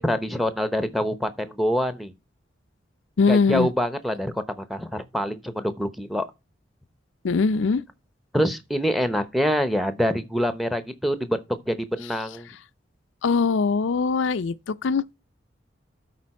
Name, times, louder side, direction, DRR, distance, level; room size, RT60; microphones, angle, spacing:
voice 1, 0.0-2.1 3.3-6.3 8.3-12.5, equal, ahead, 0.8 m, -25 dB
voice 2, 3.2-3.7 7.2-7.8 13.2-15.1, left 4 dB, 90° left, 0.5 m, -22 dB
12.5 x 4.4 x 4.3 m
head